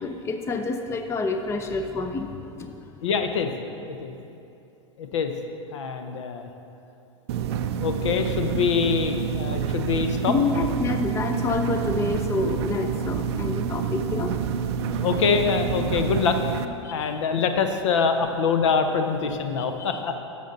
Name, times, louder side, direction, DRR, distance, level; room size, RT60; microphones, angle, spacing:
voice 1, 0.0-2.3 2.6-2.8 10.3-14.3 16.8-17.2 19.6-20.0, left 3 dB, 15° left, 6 dB, 0.5 m, -28 dB
voice 2, 3.0-3.5 3.9-4.1 5.0-5.3 5.7-6.5 7.5-10.3 14.9-16.4 16.9-20.2, left 6 dB, 70° left, 7 dB, 0.8 m, -25 dB
sound 1, 7.3-16.7, right 7 dB, 60° right, 0.5 m, -28 dB
10.0 x 6.8 x 4.0 m, 2.8 s
hypercardioid pair, 100°, 16 cm